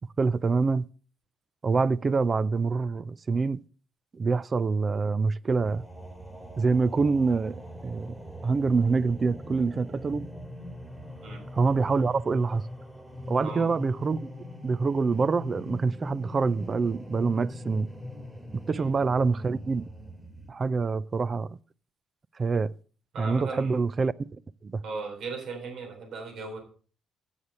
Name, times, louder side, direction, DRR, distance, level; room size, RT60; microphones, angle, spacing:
voice 1, 0.2-0.8 1.6-3.6 4.1-5.8 6.6-7.6 7.8-8.1 8.4-10.3 11.5-12.7 13.3-14.3 14.6-17.9 18.7-19.8 20.5-21.6 22.4-22.7 23.2-24.3 24.6-24.8, right 4 dB, 35° right, 0.4 m, -26 dB
sound 1, 5.5-20.5, left 1 dB, 10° right, 1.9 m, -42 dB
voice 2, 23.1-23.8 24.8-26.6, right 4 dB, 70° right, 3.5 m, -37 dB
8.2 x 7.2 x 6.4 m
cardioid pair, 90°, 0 cm